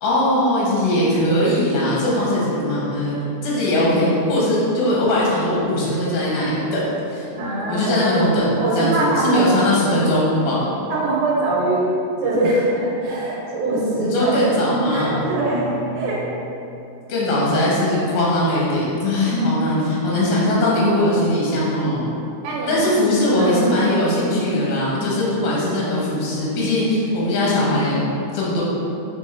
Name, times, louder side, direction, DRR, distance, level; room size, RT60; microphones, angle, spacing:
voice 1, 0.0-3.2 3.4-6.8 7.1-7.3 7.7-10.7 14.0-15.2 17.1-22.0 22.7-28.0 28.3-28.6, left 1 dB, 75° left, -6 dB, 2.4 m, -20 dB
voice 2, 7.3-8.0 8.6-9.5 10.9-16.2 19.2-19.6 22.4-22.9 23.4-24.0, right 2 dB, 85° right, -5 dB, 2.2 m, -22 dB
4.8 x 4.1 x 2.4 m, 2.9 s
omnidirectional pair, 3.5 m